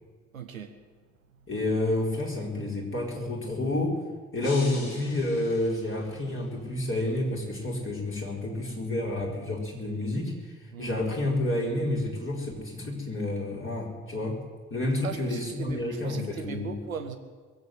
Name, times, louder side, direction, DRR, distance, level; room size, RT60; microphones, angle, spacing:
voice 1, 0.3-0.8 10.7-11.0 15.0-17.2, right 7 dB, 85° right, 8 dB, 0.7 m, -38 dB
voice 2, 1.5-4.0 4.3-10.3 10.8-14.4 14.7-16.7, left 1 dB, 30° left, -2 dB, 4.6 m, -29 dB
sound 1, 4.4-6.5, left 2 dB, 75° left, 2.2 m, -43 dB
22.0 x 8.1 x 8.0 m, 1.5 s
figure-of-eight pair, 40°, 40 cm